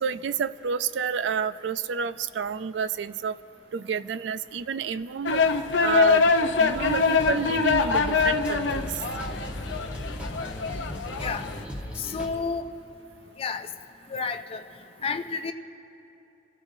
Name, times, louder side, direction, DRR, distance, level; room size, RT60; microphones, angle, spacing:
voice 1, 0.0-3.4 3.7-5.4 5.8-9.0, right 6 dB, 70° right, 15 dB, 0.4 m, -29 dB
sound 1, 5.3-11.6, left 4 dB, 75° left, 0.6 m, -24 dB
sound 2, 6.7-12.3, equal, 5° right, 1.1 m, -37 dB
voice 2, 12.0-12.7 13.4-13.7 14.1-14.6 15.0-15.5, left 5 dB, 30° left, 7 dB, 0.4 m, -30 dB
27.5 x 14.5 x 2.7 m, 2.8 s
head